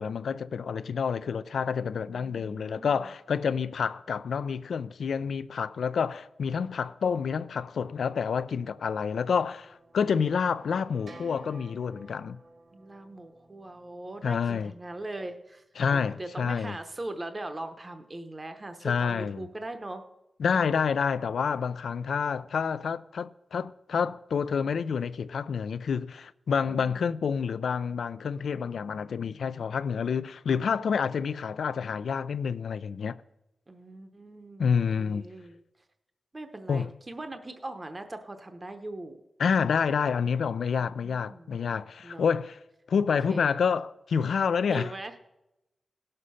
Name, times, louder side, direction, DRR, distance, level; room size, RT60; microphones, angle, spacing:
voice 1, 0.0-12.4 14.2-14.7 15.8-16.8 18.8-19.5 20.4-33.2 34.6-35.2 36.7-36.9 39.4-42.6 42.9-44.9, left 6 dB, 85° left, 0.4 m, -28 dB
voice 2, 1.9-3.1 12.7-15.6 15.9-20.1 26.7-27.1 33.7-35.6 36.3-39.2 40.8-41.6 42.0-42.3 43.3-43.5 44.7-45.2, right 2 dB, 25° right, 0.8 m, -40 dB
sound 1, 8.8-15.0, right 2 dB, 70° right, 1.8 m, -53 dB
17.5 x 6.6 x 5.5 m
wide cardioid pair, 125°, 0 cm